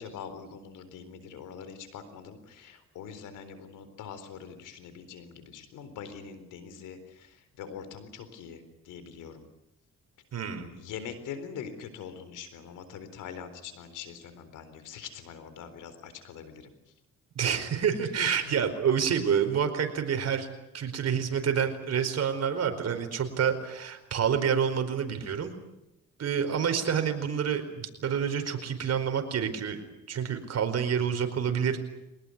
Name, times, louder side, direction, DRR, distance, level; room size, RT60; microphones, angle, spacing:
voice 1, 0.0-9.4 10.4-16.7 18.2-18.4, left 7 dB, 90° left, 11 dB, 4.1 m, -43 dB
voice 2, 10.3-10.7 17.3-20.5 20.7-25.5 26.2-31.8, right 7 dB, 55° right, 7 dB, 4.7 m, -28 dB
23.0 x 20.0 x 9.8 m, 0.90 s
cardioid pair, 90°, 30 cm